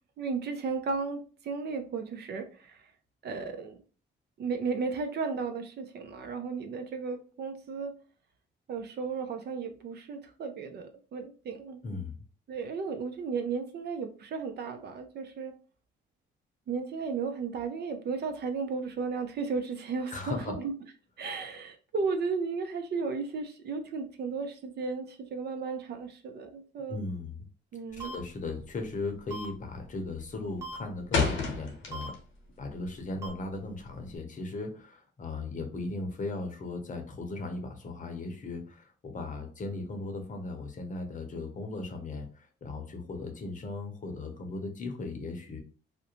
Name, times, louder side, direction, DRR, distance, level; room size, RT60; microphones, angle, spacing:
voice 1, 0.2-2.8 3.2-3.8 4.4-7.9 8.7-11.8 12.5-15.5 16.7-20.7 21.2-27.0 27.7-28.2, right 4 dB, 55° right, 7 dB, 0.5 m, -34 dB
voice 2, 11.8-12.2 20.1-20.5 26.9-27.5 27.9-32.1 32.6-45.6, left 3 dB, 40° left, 4 dB, 0.7 m, -37 dB
sound 1, 27.9-28.3 28.6-28.9 29.3-29.7 30.0-32.4 32.7-34.2, left 5 dB, 85° left, 0.8 m, -31 dB
sound 2, 28.0-28.2 29.3-29.5 30.6-30.8 31.9-32.1 33.2-33.3, right 3 dB, 15° right, 1.0 m, -38 dB
2.5 x 2.1 x 2.9 m, 0.39 s
cardioid pair, 90°, 20 cm